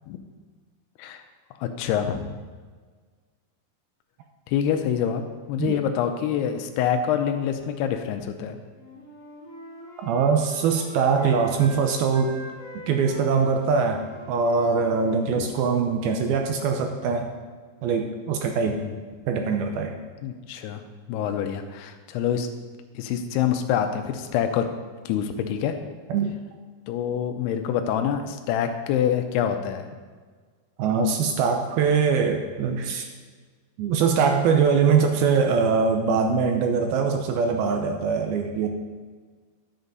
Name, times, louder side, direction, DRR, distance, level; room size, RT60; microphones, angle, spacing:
voice 1, 1.6-2.3 4.5-5.2 5.5-8.6 15.3-15.5 18.8-19.0 20.2-20.8 21.1-22.5 23.0-24.7 25.1-25.8 26.9-29.9, left 9 dB, 85° left, 6 dB, 2.7 m, -26 dB
Wind instrument woodwind instrument, 8.7-11.8 12.1-15.9, equal, 20° right, 1.8 m, -42 dB
voice 2, 10.0-12.4 12.7-17.3 17.8-18.8 19.3-20.0 26.1-26.4 30.8-33.1 33.8-38.7, right 5 dB, 80° right, 4 dB, 2.4 m, -22 dB
11.0 x 8.1 x 4.0 m, 1.5 s
omnidirectional pair, 4.7 m